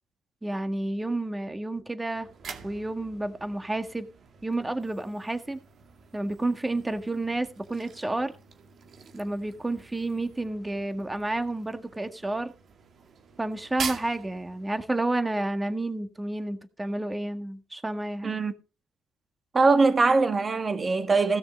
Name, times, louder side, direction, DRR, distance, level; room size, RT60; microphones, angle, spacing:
voice 1, 0.4-2.3 2.6-4.1 4.4-5.6 6.1-8.4 9.1-12.5 13.4-18.4, right 2 dB, 15° right, 1.7 m, -30 dB
sound 1, 2.1-15.1, right 6 dB, 55° right, 2.1 m, -44 dB
voice 2, 19.5-21.4, right 3 dB, 35° right, 1.8 m, -22 dB
16.5 x 6.6 x 5.2 m
cardioid pair, 80°, 0 cm